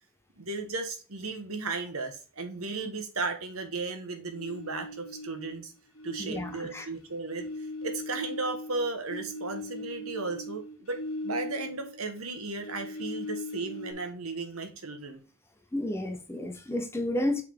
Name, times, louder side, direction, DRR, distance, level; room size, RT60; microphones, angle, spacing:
voice 1, 0.4-5.7 6.0-15.2, right 3 dB, 85° right, 1.4 m, -35 dB
sound 1, 4.3-5.6 6.0-12.1 12.3-13.9, left 2 dB, 80° left, 1.5 m, -39 dB
voice 2, 6.2-6.9 15.7-17.4, left 1 dB, 10° left, 0.8 m, -31 dB
6.8 x 3.6 x 4.7 m
head